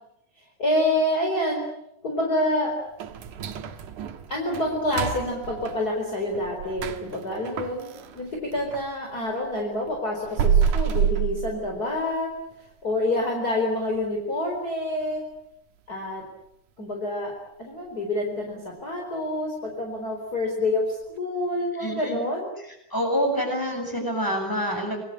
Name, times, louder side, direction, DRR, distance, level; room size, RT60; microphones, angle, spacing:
voice 1, 0.6-1.6 2.0-2.7 4.3-12.3 12.8-15.2 15.9-16.2 16.8-17.3 17.6-22.5, left 1 dB, 30° left, 1 dB, 4.8 m, -27 dB
sound 1, 3.0-8.9 9.3-12.1 12.5-12.6 13.1-13.2 13.7-14.0 14.4-14.5 15.0-15.1, right 8 dB, 85° right, 3.1 m, -28 dB
voice 2, 21.8-22.2 22.9-25.0, equal, 5° left, 4 dB, 7.2 m, -26 dB
28.0 x 21.5 x 8.9 m, 0.82 s
omnidirectional pair, 3.5 m